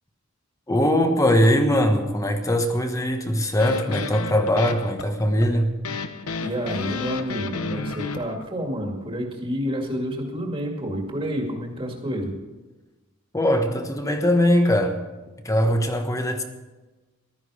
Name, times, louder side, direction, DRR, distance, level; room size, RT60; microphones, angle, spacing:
voice 1, 0.7-5.7 13.3-15.0 15.4-16.4, equal, 15° left, 1.3 m, -21 dB
sound 1, 3.6-8.4, left 4 dB, 85° left, 0.9 m, -32 dB
voice 2, 6.4-12.3, equal, 25° right, 2.2 m, -29 dB
15.0 x 12.5 x 4.9 m
head